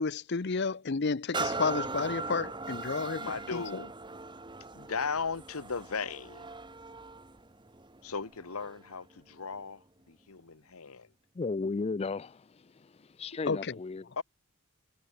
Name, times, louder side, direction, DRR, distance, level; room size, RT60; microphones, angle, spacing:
voice 1, 0.0-3.3 3.5-3.6 13.5-13.8, left 4 dB, 50° left, 0.7 m, -31 dB
sound 1, 1.3-8.9 9.5-9.6, right 3 dB, 20° right, 1.6 m, -39 dB
voice 2, 3.0-3.9 4.7-6.6 8.0-11.1 14.2-14.3, left 5 dB, 75° left, 1.2 m, -37 dB
voice 3, 11.4-12.9 13.2-14.1, left 4 dB, 25° left, 0.3 m, -34 dB
head